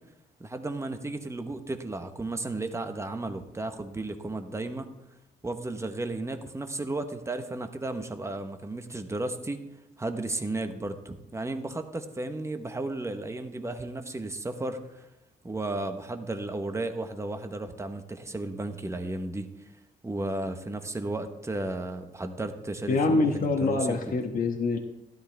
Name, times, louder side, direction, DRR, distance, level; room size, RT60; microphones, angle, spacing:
voice 1, 0.4-4.9 5.4-9.6 10.0-15.1 15.4-19.5 20.0-24.0, right 2 dB, 15° right, 7 dB, 1.1 m, -34 dB
voice 2, 22.9-24.8, left 3 dB, 50° left, 2 dB, 1.2 m, -25 dB
13.0 x 11.5 x 3.4 m, 0.92 s
cardioid pair, 85°, 19 cm